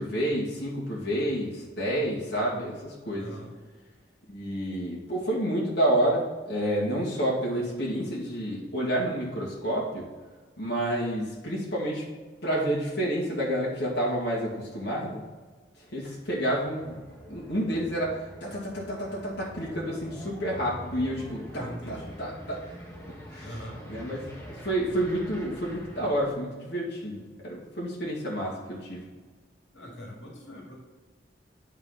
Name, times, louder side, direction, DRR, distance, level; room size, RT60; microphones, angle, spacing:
voice 1, 0.0-3.3 4.3-10.0 10.6-12.0 12.4-15.2 15.9-17.0 17.3-22.6 23.3-23.5 23.9-29.0, right 1 dB, 60° left, -5 dB, 2.1 m, -29 dB
voice 2, 3.1-3.5 21.5-22.2 23.4-23.8 29.7-30.7, equal, 85° left, -2 dB, 2.2 m, -41 dB
sound 1, 16.1-26.2, equal, 15° left, 1.5 m, -45 dB
9.0 x 5.0 x 4.0 m, 1.3 s
head